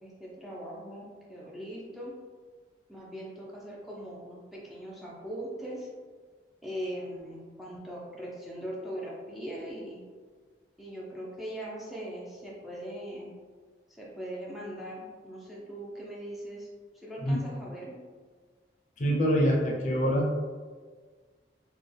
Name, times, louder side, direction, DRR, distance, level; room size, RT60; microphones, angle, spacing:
voice 1, 0.0-2.1 2.9-5.9 6.6-10.0 10.8-13.3 13.9-16.7 16.9-18.0, equal, ahead, -6 dB, 0.5 m, -40 dB
voice 2, 19.0-20.3, equal, 45° left, -2 dB, 0.6 m, -25 dB
4.1 x 2.3 x 3.3 m, 1.5 s
head